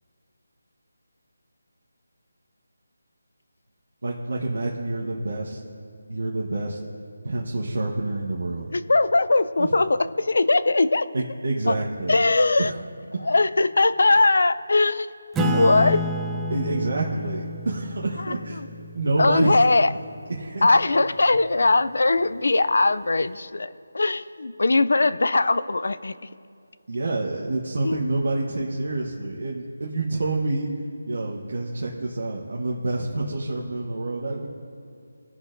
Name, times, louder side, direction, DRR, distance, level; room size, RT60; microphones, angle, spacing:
voice 1, 4.0-5.6 6.1-6.8 7.2-8.7 9.6-9.7 11.1-12.2 12.6-12.8 13.1-13.3 16.5-18.6 18.9-19.6 20.3-20.9 26.9-30.7 31.1-34.5, right 2 dB, 60° right, -2 dB, 1.2 m, -27 dB
voice 2, 8.7-11.1 11.7-11.8 12.1-12.7 13.2-15.1 15.5-16.0 18.2-18.7 19.2-19.9 20.6-23.7 23.9-26.1 27.8-28.0, left 3 dB, 65° left, 14 dB, 0.4 m, -20 dB
Acoustic guitar / Strum, 15.4-20.3, equal, 5° right, 0.4 m, -29 dB
18.0 x 6.3 x 2.6 m, 2.4 s
figure-of-eight pair, 175°, 0 cm